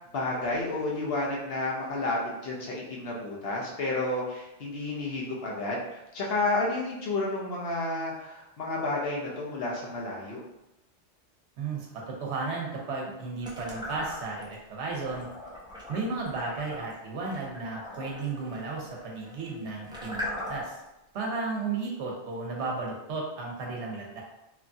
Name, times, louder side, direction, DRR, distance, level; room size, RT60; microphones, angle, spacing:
voice 1, 0.1-10.4, left 2 dB, 65° left, -3 dB, 0.8 m, -31 dB
voice 2, 11.6-15.3 15.9-20.8 21.1-24.2, right 3 dB, 80° right, -1 dB, 1.0 m, -34 dB
sound 1, 13.4-14.5 14.9-20.9, left 1 dB, 5° right, 0.3 m, -40 dB
3.0 x 2.3 x 2.5 m, 0.91 s
omnidirectional pair, 1.1 m